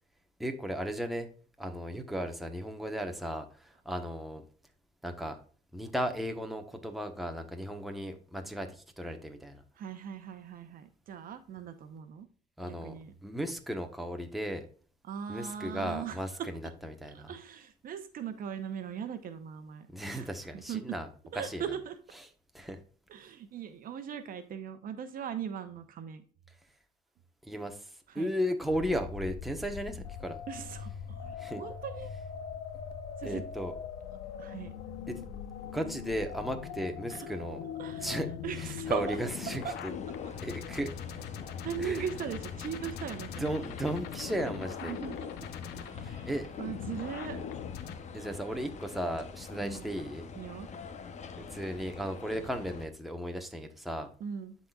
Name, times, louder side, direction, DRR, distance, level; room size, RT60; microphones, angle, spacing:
voice 1, 0.4-1.3 1.6-4.4 5.0-5.4 5.7-9.6 12.6-14.6 15.3-17.3 19.9-21.1 21.3-21.6 22.5-22.8 27.4-30.4 31.4-31.6 33.2-33.7 35.1-35.2 35.6-37.6 38.0-39.9 40.4-40.9 41.8-42.0 43.4-44.9 46.0-46.5 48.1-50.3 51.4-54.1, equal, ahead, 4 dB, 1.1 m, -35 dB
voice 2, 9.8-12.3 12.6-13.1 15.0-16.5 17.1-20.3 20.5-21.0 21.3-22.0 23.1-26.2 28.1-28.3 30.5-32.1 33.2-33.4 34.4-34.7 37.1-37.3 37.8-38.2 38.4-39.2 39.6-39.7 41.6-43.5 44.8-45.5 45.8-46.3 46.6-47.5 49.6-49.8 50.4-50.7 54.2-54.6, right 8 dB, 55° right, 9 dB, 0.9 m, -39 dB
sound 1, 28.7-48.0, left 7 dB, 80° left, 0.9 m, -41 dB
sound 2, 38.8-52.9, left 5 dB, 45° left, 0.8 m, -46 dB
12.0 x 4.2 x 2.4 m, 0.42 s
cardioid pair, 110°, 17 cm